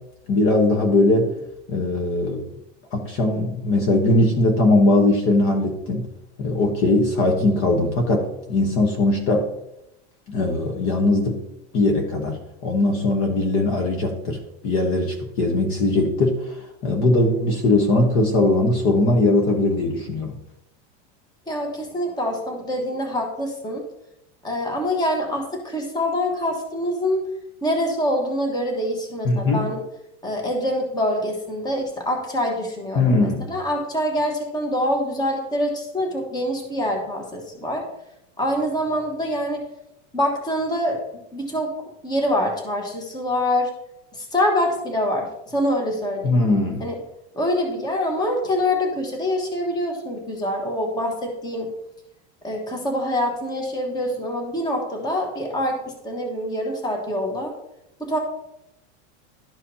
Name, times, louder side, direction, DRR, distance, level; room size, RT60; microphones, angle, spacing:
voice 1, 0.3-1.3 1.7-2.5 2.9-6.1 6.4-9.5 10.3-11.4 11.7-20.4 29.2-29.6 33.0-33.5 46.2-46.9, left 2 dB, 40° left, 3 dB, 1.1 m, -20 dB
voice 2, 21.5-23.8 24.4-27.2 27.6-29.8 30.2-37.9 38.4-39.6 40.1-41.0 41.3-41.7 42.0-43.7 44.1-46.3 46.8-46.9 47.3-51.7 52.4-57.5 58.0-58.2, left 1 dB, 10° left, 2 dB, 1.3 m, -25 dB
12.0 x 4.9 x 2.8 m, 0.84 s
supercardioid pair, 155°, 35 cm